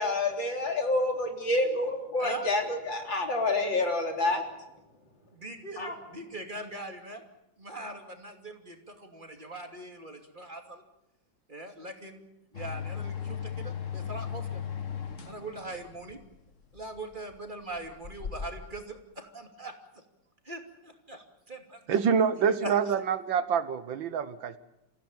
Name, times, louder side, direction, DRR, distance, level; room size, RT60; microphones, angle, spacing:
voice 1, 0.0-4.4 5.8-5.9, left 2 dB, 75° left, 3 dB, 4.3 m, -28 dB
voice 2, 5.3-7.2 7.6-10.8 11.5-12.2 12.5-14.6 15.2-16.2 16.7-19.7 20.4-21.8 22.6-22.7, right 2 dB, 25° right, 4 dB, 2.8 m, -41 dB
sound 1, 12.5-18.8, left 7 dB, 45° left, 1.6 m, -38 dB
voice 3, 21.9-24.6, right 7 dB, 80° right, 13 dB, 1.9 m, -26 dB
28.0 x 16.0 x 9.0 m, 0.89 s
omnidirectional pair, 2.1 m